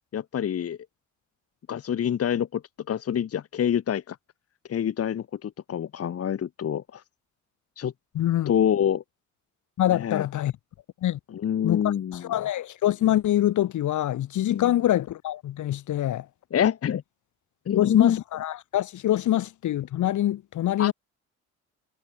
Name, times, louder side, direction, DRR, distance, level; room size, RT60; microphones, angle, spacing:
voice 1, 0.1-0.8 1.7-2.6 2.9-4.2 4.7-7.0 7.8-7.9 8.5-9.0 9.9-10.3 11.3-12.3 14.5-14.7 16.5-17.0 17.6-18.2 20.8-20.9, left 9 dB, 50° left, 1.5 m, -26 dB
voice 2, 8.1-8.5 9.8-10.5 11.0-11.2 11.6-11.8 12.1-16.3 17.7-20.9, left 13 dB, 75° left, 2.7 m, -25 dB
cardioid pair, 90°, 30 cm